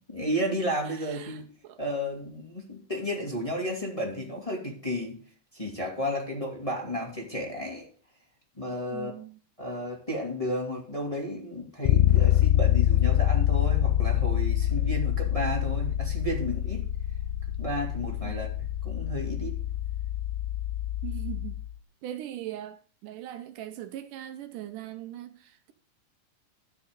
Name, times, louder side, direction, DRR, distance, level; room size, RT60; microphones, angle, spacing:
voice 1, 0.1-1.5 1.8-5.2 5.5-7.9 8.6-9.1 9.6-16.9 17.6-18.5 18.8-19.6, equal, 10° left, 2.1 m, -32 dB
voice 2, 0.8-1.8 8.9-9.4 18.2-18.4 21.0-21.6 22.0-25.7, right 12 dB, 80° right, 2.3 m, -40 dB
Bass guitar, 11.9-21.7, left 13 dB, 85° left, 2.4 m, -26 dB
13.0 x 6.1 x 6.7 m
omnidirectional pair, 3.9 m